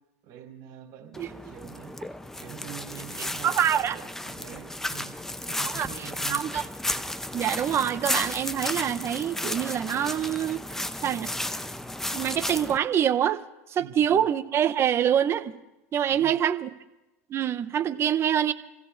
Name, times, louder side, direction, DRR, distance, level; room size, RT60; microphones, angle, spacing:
voice 1, 0.2-3.5 3.8-5.1 5.5-6.5 13.8-14.2 16.1-16.4, right 10 dB, 55° right, 1 dB, 4.3 m, -45 dB
sound 1, 1.1-12.8, left 1 dB, 5° left, 0.7 m, -34 dB
voice 2, 3.4-3.9 5.6-5.9 6.3-6.6 7.3-10.6 11.0-11.3 12.1-13.4 13.7-15.6 15.9-16.7 17.3-18.5, right 9 dB, 35° right, 13 dB, 0.8 m, -25 dB
29.5 x 15.5 x 2.6 m, 0.99 s
hypercardioid pair, 105°, 8 cm